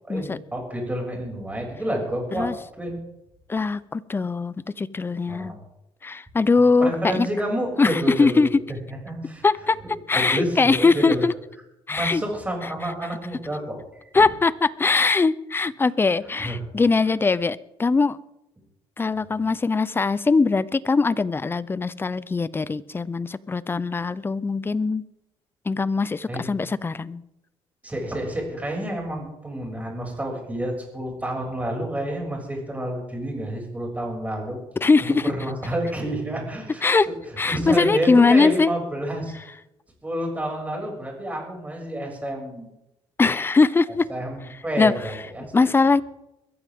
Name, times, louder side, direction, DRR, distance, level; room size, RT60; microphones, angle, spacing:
voice 1, 0.1-3.0 5.3-5.5 6.6-8.4 8.7-9.5 9.8-11.2 11.9-13.8 14.1-14.3 16.4-16.6 17.0-17.1 26.3-26.5 27.8-34.6 35.0-37.2 37.5-39.3 40.0-42.7 44.1-45.5, right 1 dB, 15° right, 0 dB, 6.8 m, -29 dB
voice 2, 3.5-5.5 6.0-7.3 7.8-8.5 9.4-9.8 10.1-11.3 11.9-12.2 14.1-18.2 19.0-25.0 25.7-27.2 34.8-35.3 36.8-37.1 37.4-38.7 43.2-44.1 44.8-44.9 45.5-46.0, left 4 dB, 20° left, 18 dB, 0.6 m, -21 dB
22.0 x 14.5 x 3.7 m, 0.87 s
cardioid pair, 105°, 11 cm